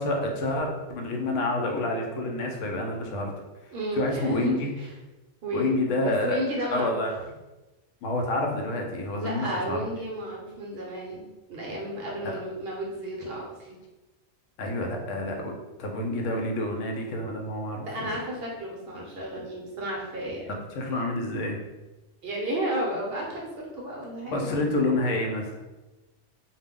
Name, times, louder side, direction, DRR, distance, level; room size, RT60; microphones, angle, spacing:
voice 1, 0.0-3.3 3.9-4.7 5.5-6.4 6.7-7.2 8.0-9.8 12.2-12.3 14.6-15.5 15.8-18.1 20.7-21.6 24.3-25.6, left 2 dB, 85° left, 2 dB, 0.9 m, -28 dB
voice 2, 3.7-4.9 5.4-5.7 6.0-7.0 9.2-13.4 17.8-20.5 22.2-23.4 23.7-24.6, right 1 dB, 60° right, -2 dB, 0.7 m, -33 dB
2.4 x 2.0 x 3.5 m, 1.1 s
omnidirectional pair, 1.3 m